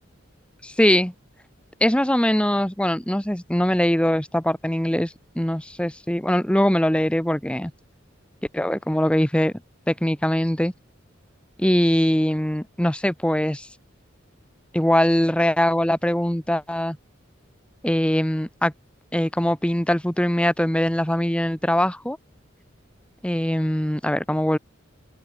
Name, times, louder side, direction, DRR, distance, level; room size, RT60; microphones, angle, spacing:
voice 1, 0.6-1.1 1.8-7.7 8.5-9.5 9.9-10.7 11.6-13.7 14.7-17.0 17.8-18.7 19.1-22.2 23.2-24.6, equal, 5° left, 1.0 m, -22 dB
open air
head